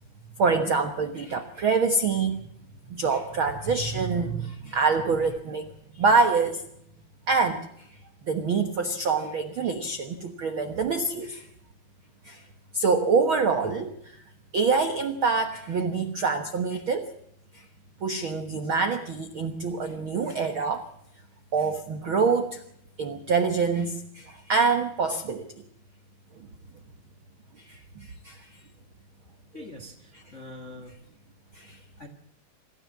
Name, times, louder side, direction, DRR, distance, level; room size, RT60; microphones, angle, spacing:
voice 1, 0.4-2.4 2.9-6.6 7.3-7.9 8.3-11.5 12.2-12.4 12.7-14.2 14.5-17.1 17.5-17.6 18.0-20.8 21.5-22.6 23.0-25.5 27.6-28.5 29.6-29.7 30.1-30.2 31.5-31.8, right 4 dB, 85° right, 7 dB, 1.1 m, -26 dB
voice 2, 29.5-30.9 32.0-32.1, left 2 dB, 35° left, 7 dB, 1.1 m, -43 dB
26.0 x 14.0 x 7.4 m, 0.74 s
omnidirectional pair, 4.4 m